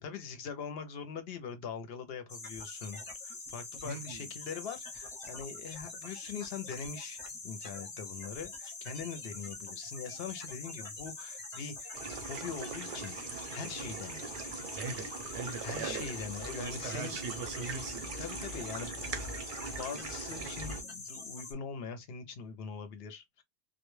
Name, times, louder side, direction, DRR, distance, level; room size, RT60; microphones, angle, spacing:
voice 1, 0.0-7.2 7.4-14.2 15.6-17.2 18.0-19.0 19.8-23.4, left 6 dB, 65° left, 0.7 m, -42 dB
sound 1, 2.3-21.5, left 3 dB, 35° left, 0.6 m, -44 dB
voice 2, 3.8-4.3 14.8-15.0 15.3-16.0 16.6-18.0, right 4 dB, 80° right, 0.9 m, -40 dB
sound 2, 11.9-20.8, right 4 dB, 55° right, 0.7 m, -41 dB
2.1 x 2.1 x 3.0 m
omnidirectional pair, 1.2 m